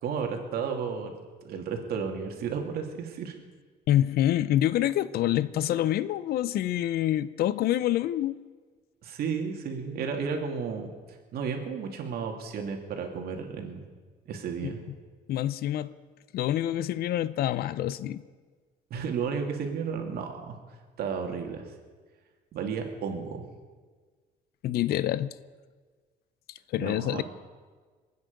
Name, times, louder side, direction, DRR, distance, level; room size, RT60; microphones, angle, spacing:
voice 1, 0.0-1.1 1.4-3.3 9.0-10.9 11.3-13.8 14.3-14.8 18.9-20.6 21.0-21.6 22.5-23.4 26.8-27.2, right 6 dB, 65° right, 2.5 m, -33 dB
voice 2, 3.9-8.4 14.6-14.7 15.3-15.9 16.3-18.2 24.6-25.3 26.7-27.2, left 12 dB, 65° left, 0.6 m, -26 dB
27.0 x 9.6 x 5.3 m
cardioid pair, 110°, 17 cm